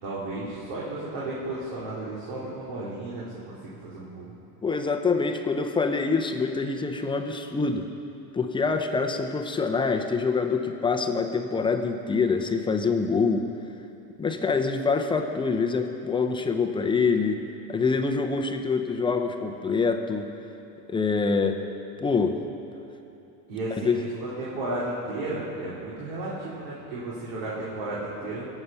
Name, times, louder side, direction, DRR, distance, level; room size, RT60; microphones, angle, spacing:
voice 1, 0.0-4.3 23.5-23.9 24.2-28.5, right 2 dB, 75° right, -8 dB, 3.5 m, -33 dB
voice 2, 4.6-7.9 8.3-13.5 14.2-17.4 17.7-20.3 20.9-21.6 22.0-22.4 23.7-24.0, left 4 dB, 10° left, 5 dB, 0.6 m, -25 dB
23.5 x 8.1 x 5.6 m, 2.9 s
cardioid pair, 155°, 40 cm